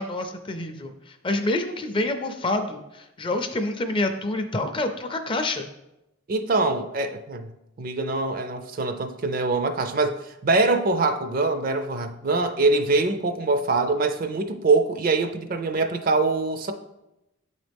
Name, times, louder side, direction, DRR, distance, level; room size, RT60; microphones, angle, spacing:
voice 1, 0.0-5.7, left 2 dB, 25° left, 0.4 m, -27 dB
voice 2, 6.3-7.5 7.8-16.7, right 3 dB, 45° right, 0.4 m, -24 dB
8.1 x 4.0 x 3.4 m
head